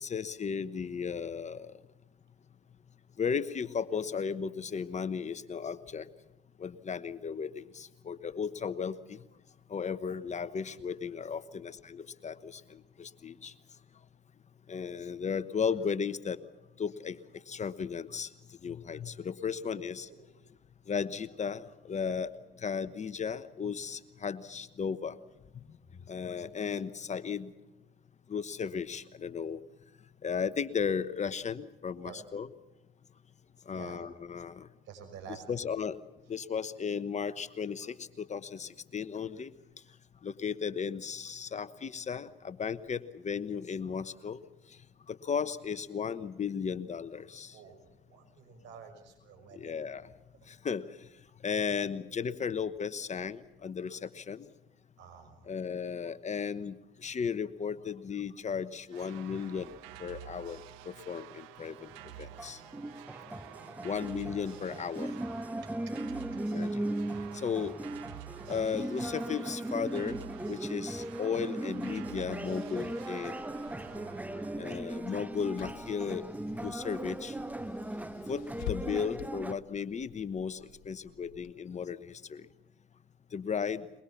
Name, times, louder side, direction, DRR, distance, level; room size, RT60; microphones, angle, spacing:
voice 1, 0.0-1.7 3.2-6.1 6.6-9.2 9.7-12.6 13.0-13.5 14.7-16.4 16.8-17.2 17.5-18.3 18.6-20.1 20.9-22.3 22.6-25.1 26.1-27.5 28.3-29.6 30.2-32.5 33.7-34.7 35.3-36.0 36.3-39.5 40.2-44.4 45.1-47.5 49.6-50.0 50.5-50.8 51.4-54.4 55.5-59.7 60.0-60.6 60.8-61.9 62.2-62.6 63.8-65.1 66.5-66.8 67.3-67.7 68.5-70.2 70.5-73.3 74.6-76.2 76.6-77.3 78.3-78.4 78.7-80.6 80.9-82.4 83.3-83.8, left 6 dB, 35° left, 13 dB, 1.1 m, -35 dB
voice 2, 19.7-20.2 22.0-22.1 32.0-32.2 33.7-34.1 34.8-35.7 47.5-49.7 55.0-55.5 63.5-64.0 73.7-74.7, right 7 dB, 65° right, 5 dB, 6.0 m, -50 dB
sound 1, 58.9-75.8, right 14 dB, 80° right, 1.3 m, -50 dB
sound 2, 61.6-79.5, right 1 dB, 5° right, 0.8 m, -38 dB
Car / Engine, 73.2-81.5, left 12 dB, 75° left, 0.9 m, -48 dB
22.5 x 22.5 x 7.2 m, 0.96 s
supercardioid pair, 70°, 20 cm